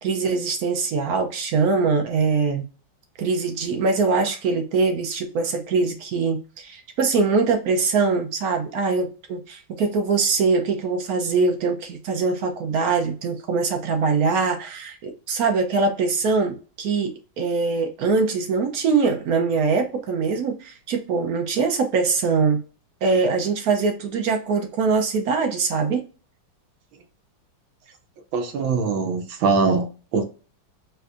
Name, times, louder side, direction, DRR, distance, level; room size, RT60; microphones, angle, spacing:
voice 1, 0.0-2.6 3.2-22.6 23.0-26.0, right 4 dB, 65° right, 0.9 m, -23 dB
voice 2, 28.3-30.3, right 4 dB, 85° right, 1.5 m, -22 dB
4.3 x 2.6 x 2.4 m
omnidirectional pair, 2.1 m